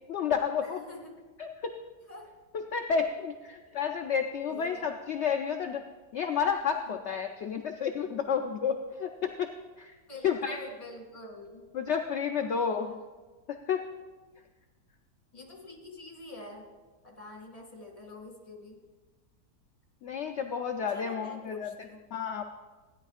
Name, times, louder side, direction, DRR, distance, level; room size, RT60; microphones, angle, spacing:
voice 1, 0.1-0.8 1.4-1.7 2.7-5.8 6.1-9.5 9.8-10.0 10.2-10.6 11.7-12.9 13.5-13.8 20.0-21.7 22.1-22.4, left 6 dB, 75° left, 4 dB, 0.6 m, -31 dB
voice 2, 0.6-1.1 2.1-2.3 3.7-3.8 4.5-4.8 6.9-7.0 10.1-11.6 12.7-13.0 15.3-16.6 17.0-18.8 20.9-22.0, left 2 dB, 20° left, 1 dB, 1.9 m, -46 dB
16.0 x 10.0 x 2.4 m, 1.3 s
omnidirectional pair, 1.8 m